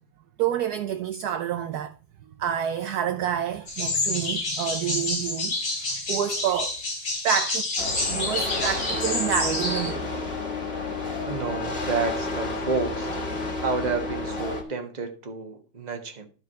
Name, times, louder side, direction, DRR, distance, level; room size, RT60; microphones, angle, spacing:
voice 1, 0.4-1.9 2.4-6.8 7.2-7.7 8.1-10.2, right 10 dB, 70° right, 1.0 m, -28 dB
sound 1, 3.7-9.9, left 2 dB, 75° left, 3.5 m, -28 dB
sound 2, 7.8-14.6, left 2 dB, 35° left, 1.9 m, -32 dB
Wind instrument woodwind instrument, 8.9-14.8, left 2 dB, 60° left, 0.8 m, -35 dB
voice 2, 11.2-13.1 13.6-16.3, right 4 dB, 25° right, 1.2 m, -30 dB
12.5 x 4.7 x 4.6 m
omnidirectional pair, 2.1 m